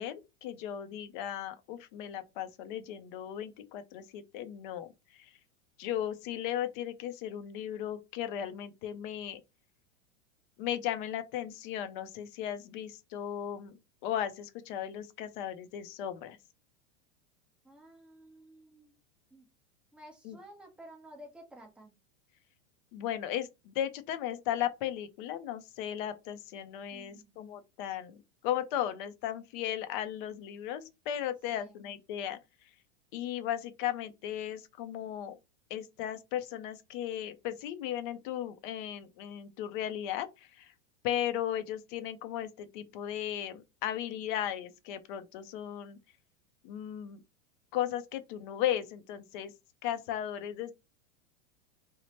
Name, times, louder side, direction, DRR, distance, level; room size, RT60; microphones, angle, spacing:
voice 1, 0.0-4.9 5.8-9.4 10.6-16.4 20.2-20.4 22.9-28.2 28.4-32.4 33.1-35.4 35.7-40.3 41.0-46.0 46.6-47.2 47.7-49.5 49.8-50.7, left 11 dB, 45° left, 0.4 m, -36 dB
voice 2, 17.6-18.9 19.3-19.5 19.9-21.9 26.9-27.4 31.5-31.8, equal, 5° right, 0.6 m, -53 dB
2.9 x 2.0 x 2.8 m
supercardioid pair, 140°, 37 cm